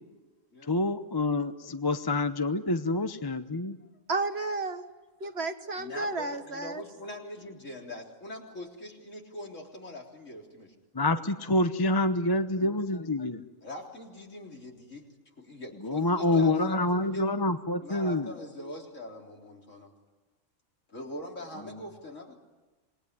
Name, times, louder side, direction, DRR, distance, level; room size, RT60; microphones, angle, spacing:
voice 1, 0.7-3.8 10.9-13.4 15.8-18.3, left 2 dB, 20° left, 9 dB, 0.9 m, -27 dB
voice 2, 4.1-4.9 5.2-6.8, right 3 dB, 55° right, 8 dB, 1.6 m, -32 dB
voice 3, 5.8-10.7 13.6-15.1 15.4-17.3 17.8-19.9 20.9-22.4, left 1 dB, 70° left, 0 dB, 4.1 m, -42 dB
27.5 x 20.5 x 9.8 m, 1.2 s
omnidirectional pair, 1.4 m